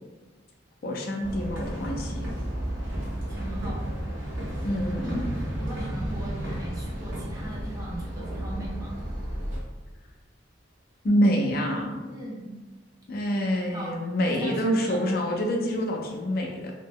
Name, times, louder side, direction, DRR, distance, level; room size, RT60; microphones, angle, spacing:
voice 1, 0.8-2.3 4.6-5.3 11.0-12.0 13.1-16.7, equal, 50° left, 1 dB, 0.4 m, -26 dB
sound 1, 1.2-9.6, right 1 dB, 85° right, 0.8 m, -32 dB
voice 2, 3.3-4.0 4.9-5.1 5.6-9.0 12.1-12.4 13.7-13.9 14.2-15.0, right 1 dB, 20° right, -4 dB, 0.6 m, -39 dB
2.7 x 2.1 x 3.6 m, 1.3 s
head